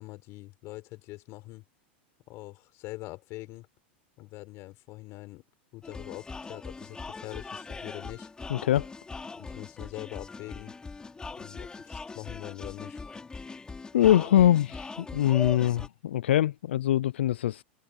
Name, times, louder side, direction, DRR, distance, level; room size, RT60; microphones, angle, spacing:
voice 1, 0.0-1.7 2.3-3.7 4.2-5.4 5.7-8.3 9.4-10.8 11.4-13.0, left 20 dB, 50° left, 4.1 m, -43 dB
sound 1, 5.8-15.9, left 4 dB, 15° left, 4.6 m, -41 dB
voice 2, 8.5-8.9 13.9-17.6, left 12 dB, 85° left, 0.3 m, -23 dB
hypercardioid pair, 115°, 6 cm